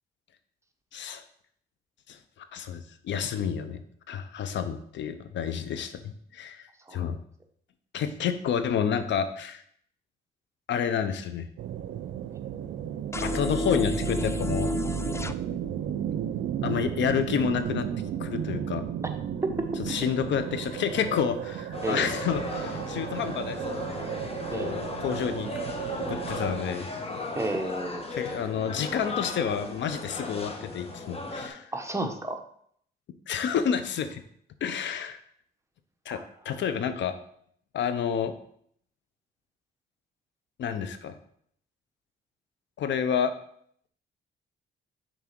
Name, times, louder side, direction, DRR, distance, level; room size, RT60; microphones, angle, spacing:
voice 1, 0.9-1.2 2.1-2.2 2.5-3.8 4.1-7.2 7.9-9.6 10.7-11.5 13.2-14.7 16.6-17.9 18.2-18.8 19.8-23.9 24.5-25.5 26.1-26.9 28.1-31.7 33.3-34.2 34.6-35.2 36.1-37.2 37.7-38.3 40.6-41.2 42.8-43.3, left 7 dB, 65° left, 10 dB, 0.7 m, -29 dB
sound 1, 11.6-26.6, right 10 dB, 70° right, 0.5 m, -34 dB
sound 2, 13.1-15.3, left 1 dB, 15° left, 0.4 m, -30 dB
sound 3, 21.7-31.5, left 2 dB, 30° left, 1.4 m, -36 dB
voice 2, 27.3-28.1 31.7-32.4 36.1-36.2, right 2 dB, 15° right, 4 dB, 1.0 m, -31 dB
6.1 x 4.1 x 6.0 m, 0.64 s
cardioid pair, 90°, 20 cm